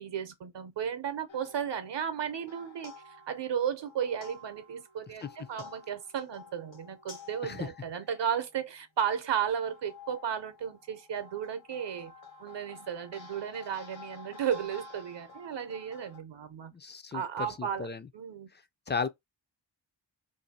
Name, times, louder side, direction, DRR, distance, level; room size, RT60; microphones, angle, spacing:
voice 1, 0.0-12.1 12.4-16.7 17.1-17.9 18.1-18.5, right 8 dB, 70° right, 0.7 m, -34 dB
sound 1, 1.3-8.7 9.3-16.2, left 4 dB, 80° left, 1.2 m, -51 dB
voice 2, 16.7-18.1 18.9-19.1, left 5 dB, 25° left, 0.4 m, -35 dB
2.7 x 2.5 x 4.1 m
wide cardioid pair, 70°, 45 cm